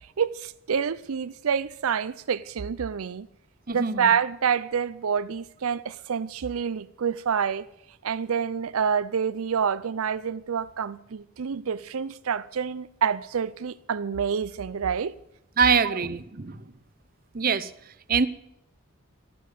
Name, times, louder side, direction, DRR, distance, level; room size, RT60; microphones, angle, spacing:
voice 1, 0.2-3.3 3.7-7.7 8.0-15.1, right 7 dB, 80° right, 0.5 m, -27 dB
voice 2, 3.7-4.1 15.6-16.7 17.3-18.3, right 5 dB, 40° right, 0.8 m, -24 dB
13.0 x 11.0 x 8.4 m
head